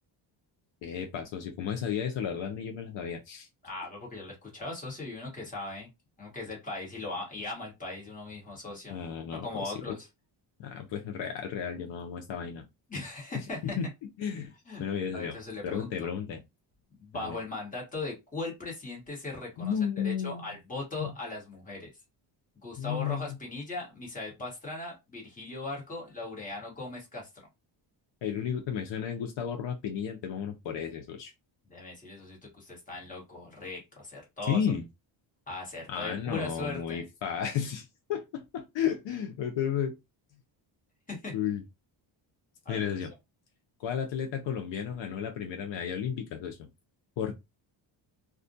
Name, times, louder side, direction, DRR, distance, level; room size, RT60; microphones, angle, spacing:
voice 1, 0.8-3.5 8.9-9.9 10.6-12.6 13.3-13.9 14.2-14.5 14.8-15.4 15.6-16.4 17.1-17.4 19.6-20.6 21.0-21.1 22.8-23.4 28.2-31.3 34.5-34.9 35.9-40.0 41.3-41.6 42.7-43.1 43.8-46.6 47.2-47.3, left 8 dB, 65° left, 0.6 m, -33 dB
voice 2, 3.6-5.9 6.2-9.0 9.4-10.1 12.9-13.8 14.7-14.8 15.1-16.1 17.0-19.7 20.0-21.9 22.6-27.3 31.7-34.6 35.5-37.0 41.1-41.3 42.6-42.8, left 2 dB, 15° left, 1.1 m, -39 dB
2.4 x 2.1 x 2.6 m
cardioid pair, 155°, 47 cm